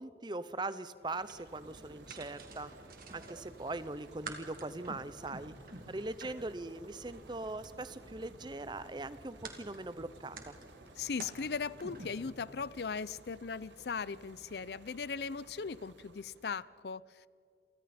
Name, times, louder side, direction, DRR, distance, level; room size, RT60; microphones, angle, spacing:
voice 1, 0.0-2.7 3.1-5.5 5.9-10.6, right 2 dB, 25° right, 14 dB, 0.7 m, -41 dB
sound 1, 0.9-16.7, right 2 dB, 90° right, 1.3 m, -58 dB
sound 2, 1.1-12.1, right 3 dB, 50° right, 2.4 m, -51 dB
sound 3, 1.5-13.2, equal, 20° left, 5.5 m, -58 dB
voice 2, 11.0-17.3, left 5 dB, 65° left, 19 dB, 0.5 m, -38 dB
29.5 x 24.5 x 4.3 m, 2.3 s
head